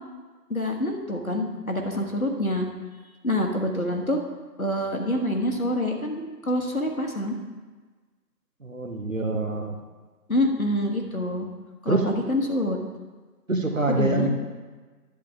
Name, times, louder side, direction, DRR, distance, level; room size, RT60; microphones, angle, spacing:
voice 1, 0.5-2.7 3.2-4.2 4.6-7.4 10.3-11.5 11.8-12.8 13.9-14.3, left 1 dB, 55° left, 2 dB, 1.4 m, -26 dB
voice 2, 8.6-9.8 11.9-12.1 13.5-14.3, right 2 dB, 50° right, 4 dB, 1.1 m, -25 dB
11.5 x 8.7 x 3.4 m, 1.3 s
figure-of-eight pair, 170°, 50 cm